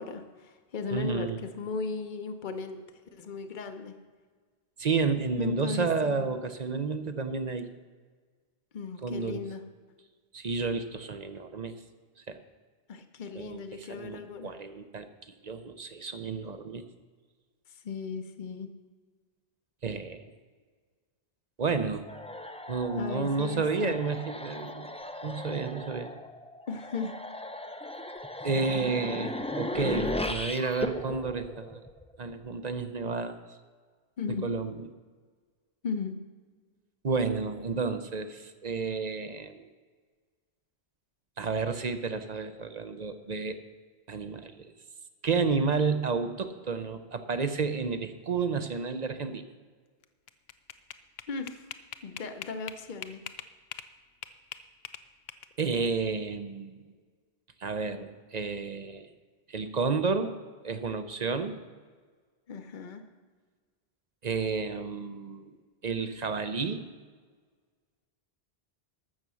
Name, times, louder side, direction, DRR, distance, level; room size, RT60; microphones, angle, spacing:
voice 1, 0.0-2.8 3.1-4.0 5.4-6.3 8.7-9.6 12.9-14.5 17.7-18.7 23.0-23.9 26.7-27.2 34.2-34.5 35.8-36.1 51.3-51.6 52.0-53.2 62.5-63.0, left 5 dB, 50° left, 8 dB, 1.0 m, -36 dB
voice 2, 0.9-1.4 4.8-7.7 9.0-9.4 10.3-11.7 12.3-12.4 13.3-15.1 15.4-16.8 19.8-20.2 21.6-22.1 22.7-24.9 25.2-26.1 28.4-31.8 32.2-33.4 34.4-34.9 37.0-39.7 41.4-43.6 44.1-44.7 45.2-49.4 55.6-56.8 57.6-59.1 59.5-60.3 60.6-61.6 64.2-65.6 65.8-66.8, right 4 dB, 45° right, 9 dB, 0.7 m, -31 dB
sound 1, 22.1-32.3, left 1 dB, 10° left, 0.5 m, -37 dB
sound 2, 50.0-53.9 54.2-55.8, left 9 dB, 75° left, 0.9 m, -42 dB
14.0 x 6.8 x 6.2 m, 1.5 s
omnidirectional pair, 1.1 m